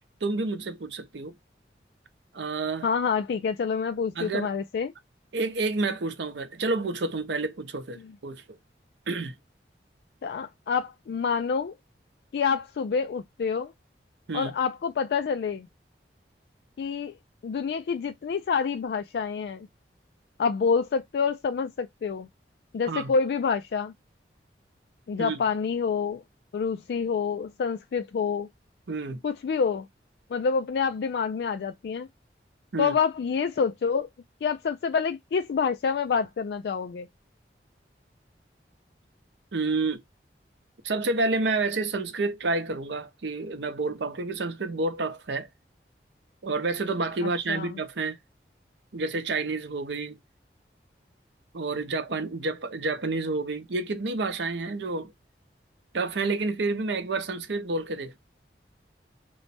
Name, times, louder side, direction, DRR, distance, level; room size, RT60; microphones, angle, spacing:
voice 1, 0.2-1.3 2.3-2.9 4.2-4.5 5.3-8.4 9.1-9.3 14.3-14.5 22.9-23.1 25.2-25.4 28.9-29.2 32.7-32.9 39.5-40.0 40.8-45.5 46.4-48.2 48.9-50.2 51.5-55.1 55.9-58.2, right 3 dB, 85° right, 0.7 m, -29 dB
voice 2, 2.8-4.9 10.2-11.7 12.3-13.7 14.3-15.7 16.8-17.2 17.4-19.7 20.4-22.3 22.7-23.9 25.1-26.2 26.5-28.5 29.2-29.9 30.3-32.1 32.8-34.1 34.4-37.1 47.2-47.8, left 6 dB, 65° left, 0.3 m, -27 dB
3.1 x 2.1 x 4.0 m
head